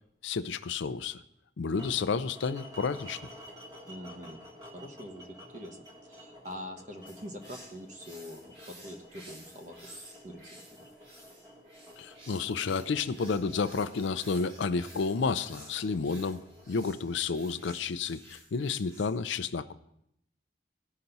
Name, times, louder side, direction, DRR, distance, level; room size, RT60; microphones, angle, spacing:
voice 1, 0.2-1.2 1.6-3.2 12.0-16.4 16.7-19.7, left 5 dB, 80° left, 11 dB, 0.5 m, -31 dB
sound 1, 1.7-17.8, left 1 dB, 20° right, 1.5 m, -52 dB
voice 2, 3.8-10.9, equal, 40° right, 4 dB, 1.1 m, -45 dB
sound 2, 7.1-19.1, right 1 dB, 80° right, 4.9 m, -53 dB
17.0 x 5.8 x 4.0 m, 0.76 s
head